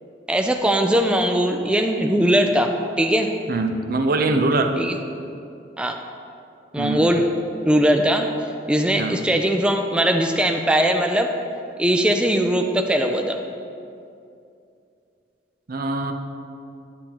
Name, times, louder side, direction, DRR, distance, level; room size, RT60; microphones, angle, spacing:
voice 1, 0.3-3.3 4.8-4.9 5.8-6.0 6.7-7.3 7.6-8.3 8.7-11.3 11.8-13.4, equal, 5° right, 4 dB, 0.3 m, -20 dB
voice 2, 3.5-4.8 6.8-7.1 9.0-9.3 15.7-16.1, right 2 dB, 55° right, 6 dB, 0.6 m, -23 dB
9.8 x 8.5 x 2.9 m, 2.5 s
head